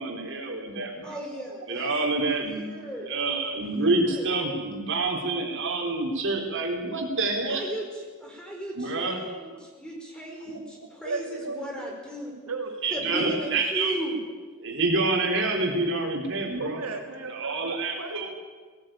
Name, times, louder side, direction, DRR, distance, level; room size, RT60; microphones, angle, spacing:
voice 1, 0.0-1.2 1.7-2.7 3.0-7.7 8.7-9.4 10.5-10.6 12.8-14.0 14.6-16.8 17.3-18.3, right 3 dB, 60° right, 1 dB, 4.0 m, -27 dB
voice 2, 1.0-1.9 2.4-3.2 3.8-3.9 7.5-7.8 8.2-9.5 9.8-12.3 12.9-14.1, right 1 dB, 5° left, -1 dB, 4.8 m, -35 dB
voice 3, 11.0-11.9 12.5-13.2 16.0-16.2 16.6-18.3, right 3 dB, 80° right, 2 dB, 2.7 m, -36 dB
18.5 x 18.0 x 9.2 m, 1.4 s
head